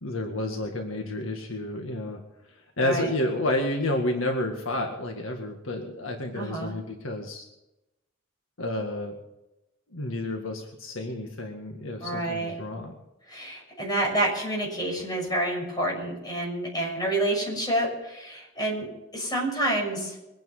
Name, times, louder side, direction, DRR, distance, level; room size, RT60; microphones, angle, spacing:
voice 1, 0.0-2.2 2.8-7.5 8.6-9.2 9.9-12.9, left 1 dB, 70° left, 2 dB, 1.9 m, -30 dB
voice 2, 2.8-3.1 6.3-6.7 12.0-12.5 13.3-18.9 19.1-20.2, right 1 dB, 20° left, -2 dB, 6.4 m, -28 dB
23.0 x 9.5 x 5.6 m, 0.94 s
head